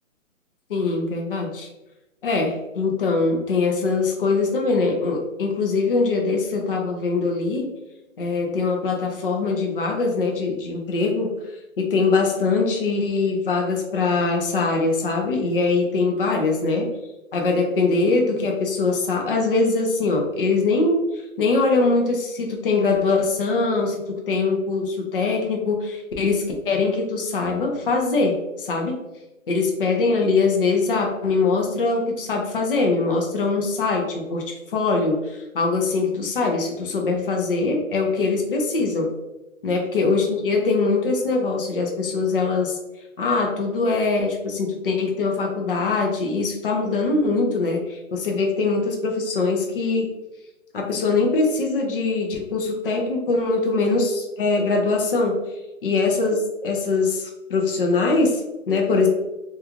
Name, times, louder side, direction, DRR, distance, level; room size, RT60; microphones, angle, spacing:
voice 1, 0.7-1.7 2.2-7.7 8.2-11.3 11.8-16.9 17.3-29.0 29.5-39.1 39.6-42.8 43.2-50.1 50.7-55.4 55.8-58.4 58.7-59.1, left 3 dB, 45° left, 1 dB, 0.4 m, -22 dB
2.4 x 2.3 x 2.9 m, 1.0 s
hypercardioid pair, 160°, 41 cm